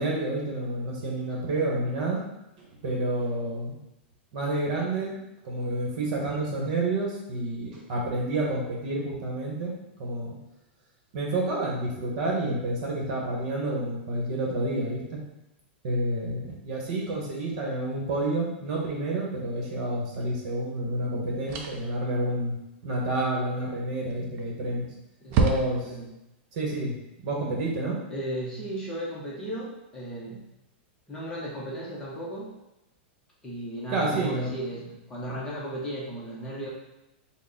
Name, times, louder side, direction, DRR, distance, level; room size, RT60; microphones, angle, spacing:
voice 1, 0.0-2.2 2.6-3.8 4.3-5.2 5.4-9.7 10.0-10.4 11.1-15.2 15.8-22.6 22.8-24.9 25.3-25.9 26.5-27.0 27.2-28.0 33.9-34.5, right 2 dB, 50° right, -2 dB, 1.1 m, -29 dB
sound 1, 20.1-20.3 21.5-22.0 24.0-24.5 24.8-24.9 25.3-26.1, right 4 dB, 35° right, 0.5 m, -27 dB
voice 2, 25.2-26.1 28.1-30.4 31.1-32.5 33.4-36.7, right 1 dB, 10° left, -6 dB, 0.7 m, -36 dB
4.0 x 2.1 x 3.7 m, 0.90 s
supercardioid pair, 160°, 6 cm